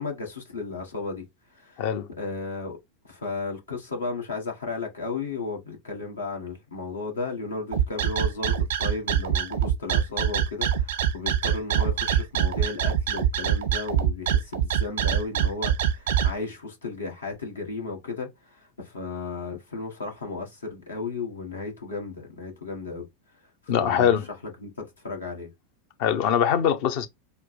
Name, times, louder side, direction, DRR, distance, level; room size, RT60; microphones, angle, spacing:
voice 1, 0.0-1.9 2.2-2.8 3.0-23.1 23.6-25.5, left 3 dB, 75° left, 1.6 m, -34 dB
sound 1, 7.7-16.3, right 9 dB, 65° right, 0.6 m, -24 dB
voice 2, 23.7-24.2 26.0-27.1, left 8 dB, 50° left, 0.8 m, -22 dB
4.3 x 2.3 x 4.1 m
figure-of-eight pair, 90°, 0 cm